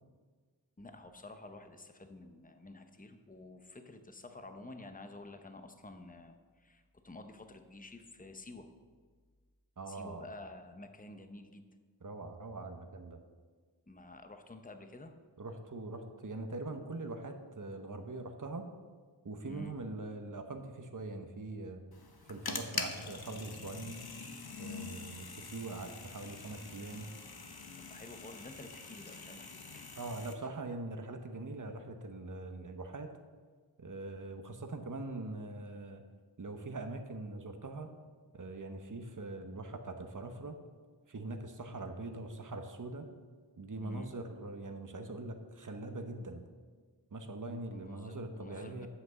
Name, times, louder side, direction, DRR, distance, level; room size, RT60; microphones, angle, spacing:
voice 1, 0.8-8.7 9.9-11.6 13.9-15.1 19.5-19.7 27.8-29.9 43.8-44.1 47.7-48.9, left 2 dB, 20° left, 7 dB, 0.8 m, -50 dB
voice 2, 9.8-10.3 12.0-13.2 15.4-18.7 19.2-21.8 22.3-24.0 24.6-27.1 30.0-33.1 33.8-36.0 36.4-37.9 38.3-40.6 41.1-43.1 43.6-46.4 47.1-48.9, right 2 dB, 45° right, 6 dB, 0.9 m, -42 dB
sound 1, 21.9-30.3, left 4 dB, 60° left, 0.9 m, -44 dB
8.1 x 5.9 x 7.5 m, 1.5 s
wide cardioid pair, 45°, 42 cm